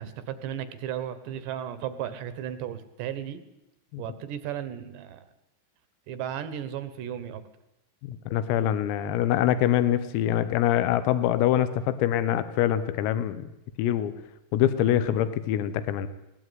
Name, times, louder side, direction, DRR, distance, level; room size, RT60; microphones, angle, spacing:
voice 1, 0.0-3.4 4.0-5.3 6.1-7.4, right 10 dB, 70° right, 12 dB, 3.1 m, -35 dB
voice 2, 8.1-13.5 13.8-14.1 14.5-16.1, left 11 dB, 90° left, 13 dB, 3.8 m, -24 dB
21.0 x 18.5 x 9.4 m, 0.92 s
omnidirectional pair, 5.9 m